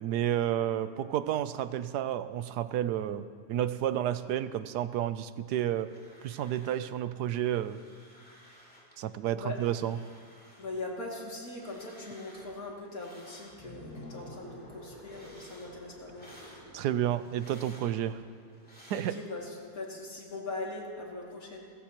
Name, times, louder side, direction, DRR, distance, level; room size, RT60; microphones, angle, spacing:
voice 1, 0.0-5.9 6.2-7.8 9.0-10.0 16.7-18.2 18.9-19.2, right 11 dB, 90° right, 13 dB, 1.2 m, -31 dB
sound 1, 5.6-6.9 7.2-9.0 9.3-14.1 14.4-19.6, equal, 5° left, 2.8 m, -56 dB
voice 2, 10.6-16.3 18.9-21.7, left 2 dB, 60° left, -2 dB, 3.0 m, -40 dB
sound 2, 13.5-18.5, equal, 25° left, 4.6 m, -50 dB
29.5 x 14.5 x 3.0 m, 2.3 s
omnidirectional pair, 1.7 m